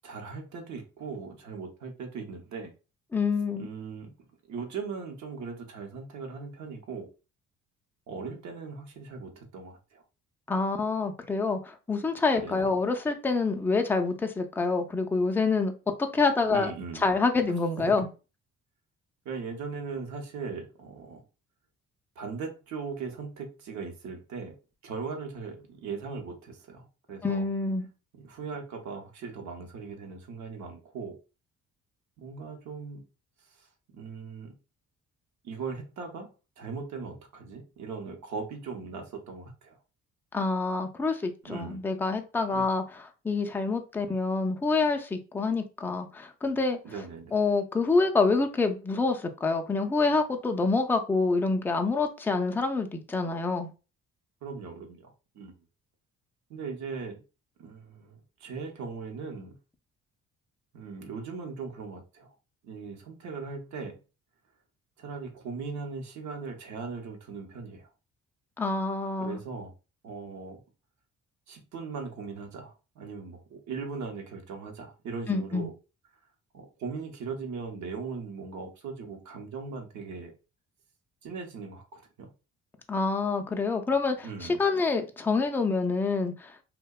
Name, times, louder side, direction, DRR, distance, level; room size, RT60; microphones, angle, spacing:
voice 1, 0.0-2.7 3.6-4.1 4.5-7.1 8.1-10.0 12.4-12.7 16.5-17.0 17.4-17.5 19.2-21.2 22.2-24.6 24.8-27.4 28.1-31.2 32.2-33.0 33.6-33.7 33.9-34.6 35.4-36.3 36.6-39.8 41.4-41.8 42.5-42.7 46.8-47.3 54.4-55.5 56.5-57.2 57.6-59.6 60.7-62.3 62.6-64.0 65.0-67.9 69.2-69.7 70.0-70.6 71.5-75.7 76.5-80.3 81.2-82.3 84.2-84.6, right 5 dB, 70° right, 4 dB, 0.7 m, -39 dB
voice 2, 3.1-3.7 10.5-15.7 16.0-16.7 17.0-18.1 27.2-27.9 40.3-42.8 43.2-46.8 47.3-53.7 68.6-69.4 75.3-75.7 82.9-86.5, left 3 dB, 5° left, 5 dB, 0.3 m, -27 dB
2.6 x 2.1 x 2.2 m, 0.32 s
cardioid pair, 90°, 30 cm